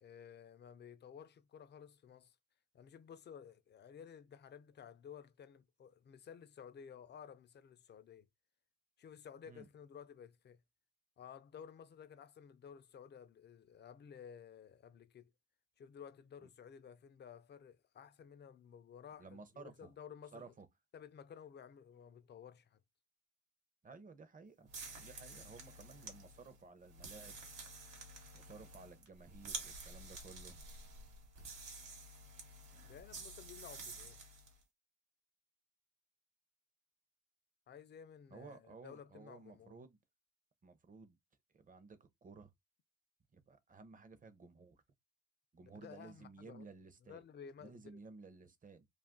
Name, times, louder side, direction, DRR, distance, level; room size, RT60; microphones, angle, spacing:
voice 1, 0.0-2.4 2.7-8.3 9.0-10.6 11.2-15.3 15.8-20.5 20.9-22.8 32.8-34.2 37.7-39.8 45.7-46.7 47.0-48.0, left 7 dB, 35° left, 0.4 m, -54 dB
voice 2, 19.2-19.9 20.3-20.7 23.8-24.7 25.0-27.4 28.3-30.6 38.3-40.0 40.6-41.2 41.5-42.5 43.3-44.8 45.5-47.2 47.6-48.9, right 4 dB, 25° right, 0.6 m, -55 dB
sound 1, 24.7-34.6, right 3 dB, 85° right, 1.1 m, -50 dB
2.5 x 2.3 x 3.5 m
cardioid pair, 90°, 30 cm